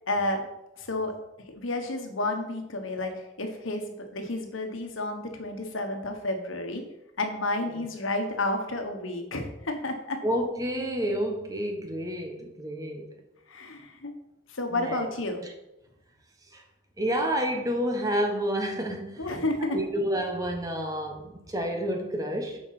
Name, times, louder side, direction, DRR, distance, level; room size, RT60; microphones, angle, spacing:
voice 1, 0.1-0.5 0.8-1.1 1.5-3.1 3.4-6.8 7.2-10.2 13.5-14.1 14.5-15.4 19.2-19.8, left 2 dB, 85° left, 1.4 m, -31 dB
voice 2, 10.2-13.1 14.7-15.0 16.5-16.6 17.0-19.3 19.7-22.6, equal, 20° right, 1.1 m, -29 dB
7.6 x 5.3 x 6.0 m
head